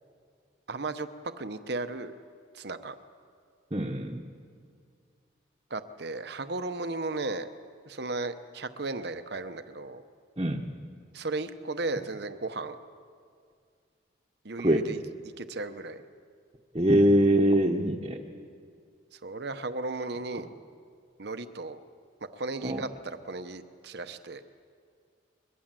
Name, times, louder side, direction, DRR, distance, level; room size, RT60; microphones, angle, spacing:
voice 1, 0.7-1.1 1.4-2.1 2.5-3.0 5.7-7.5 7.9-10.0 11.1-12.8 14.4-15.0 15.4-16.0 19.1-20.5 21.2-21.8 22.3-24.4, right 3 dB, 55° right, 10 dB, 0.9 m, -35 dB
voice 2, 3.7-4.2 10.4-10.7 14.6-14.9 16.7-18.2 22.6-22.8, right 1 dB, 30° right, -1 dB, 1.1 m, -23 dB
22.5 x 21.5 x 7.6 m, 2.2 s
head